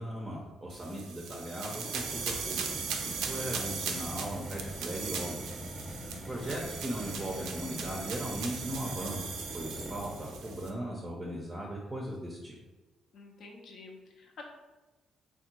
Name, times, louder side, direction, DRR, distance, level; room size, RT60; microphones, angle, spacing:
voice 1, 0.0-2.6 3.0-5.5 6.0-12.6, equal, 20° right, -3 dB, 0.5 m, -38 dB
sound 1, 0.7-10.7, right 6 dB, 90° right, 0.3 m, -39 dB
sound 2, 1.6-10.7, equal, 10° left, 0.7 m, -43 dB
voice 2, 3.1-3.7 6.1-6.6 13.1-14.4, left 3 dB, 65° left, 1 dB, 0.6 m, -51 dB
3.4 x 2.1 x 2.9 m, 1.2 s
cardioid pair, 90°, 0 cm